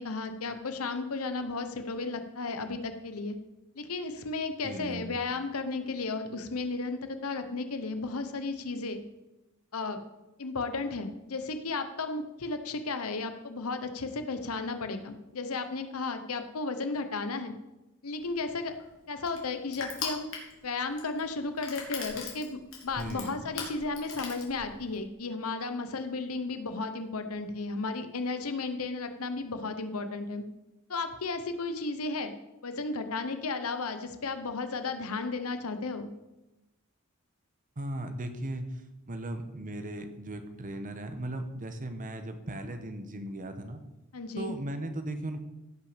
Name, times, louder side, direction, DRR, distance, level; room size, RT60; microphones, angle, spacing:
voice 1, 0.0-3.4 3.7-9.0 9.7-10.0 10.4-17.5 18.0-18.7 19.1-20.3 20.6-30.4 30.9-32.3 32.6-36.1 44.1-44.5, left 3 dB, 85° left, 8 dB, 1.0 m, -34 dB
voice 2, 4.6-5.1 23.0-23.5 37.8-43.8 44.4-45.4, right 1 dB, 40° right, 8 dB, 1.1 m, -37 dB
Crushing, 18.2-25.0, left 5 dB, 65° left, 2.7 m, -41 dB
15.5 x 5.9 x 5.1 m, 1.0 s
head